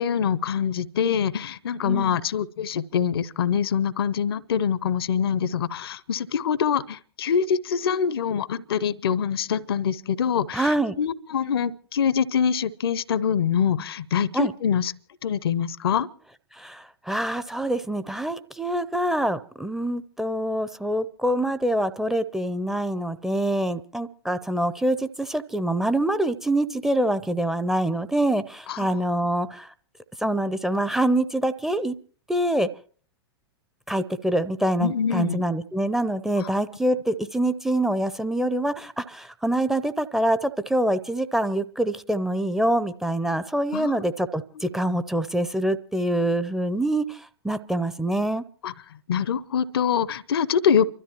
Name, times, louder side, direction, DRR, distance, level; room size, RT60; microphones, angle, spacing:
voice 1, 0.0-14.9 15.2-16.1 28.7-28.9 34.8-35.4 36.4-36.5 43.7-44.0 44.6-44.7 48.6-48.7 49.1-50.9, left 7 dB, 65° left, 0.7 m, -24 dB
voice 2, 1.8-2.2 10.5-10.9 14.3-14.5 16.5-29.7 30.2-31.9 32.3-32.7 33.9-48.4, right 1 dB, 5° right, 0.6 m, -25 dB
29.5 x 13.0 x 3.0 m
figure-of-eight pair, 100°, 14 cm